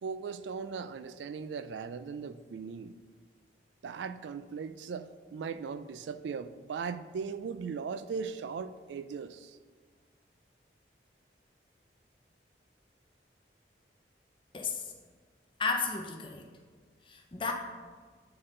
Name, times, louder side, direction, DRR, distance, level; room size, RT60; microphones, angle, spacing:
voice 1, 0.0-2.9 3.8-9.6, right 5 dB, 80° right, 12 dB, 0.3 m, -38 dB
voice 2, 14.5-14.9 15.6-16.5 17.1-17.5, left 4 dB, 30° left, 3 dB, 0.6 m, -33 dB
8.8 x 4.3 x 3.8 m, 1.5 s
head